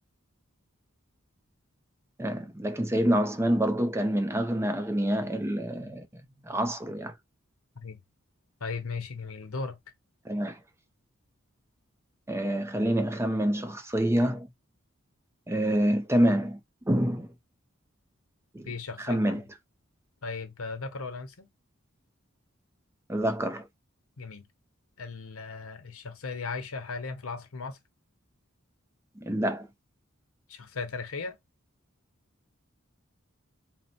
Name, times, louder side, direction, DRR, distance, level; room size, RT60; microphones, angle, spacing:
voice 1, 2.2-6.1 6.4-7.1 10.3-10.6 12.3-14.5 15.5-16.6 16.9-17.3 18.5-18.7 19.0-19.4 23.1-23.7 29.2-29.7, right 1 dB, 15° right, 0.5 m, -27 dB
voice 2, 8.6-9.8 18.7-19.4 20.2-21.5 24.2-24.5 25.0-27.8 30.5-31.3, left 4 dB, 85° left, 0.9 m, -37 dB
4.1 x 2.1 x 4.2 m
head